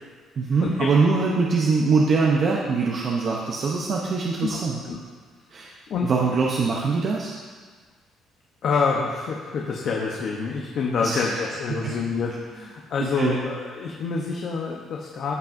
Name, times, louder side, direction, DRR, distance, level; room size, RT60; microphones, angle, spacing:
voice 1, 0.4-4.8 5.5-5.7 6.0-7.3 11.0-11.2 11.8-11.9 13.0-13.4, right 4 dB, 40° right, -2 dB, 0.7 m, -22 dB
voice 2, 8.6-15.3, left 5 dB, 50° left, -1 dB, 0.8 m, -27 dB
14.0 x 5.9 x 2.6 m, 1.5 s
cardioid pair, 155°, 0 cm